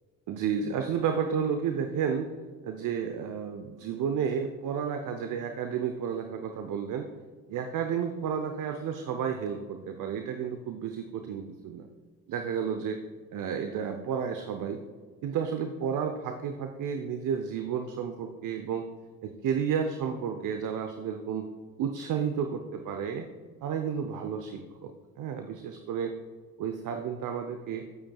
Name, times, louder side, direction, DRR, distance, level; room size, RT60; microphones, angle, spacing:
voice 1, 0.3-2.3 2.6-7.1 7.5-11.9 12.3-13.0 13.3-14.8 15.2-18.8 19.2-21.5 21.8-23.3 23.6-26.1 26.6-27.8, right 7 dB, 50° right, 6 dB, 0.8 m, -32 dB
12.0 x 8.7 x 2.4 m, 1.5 s
hypercardioid pair, 50°, 41 cm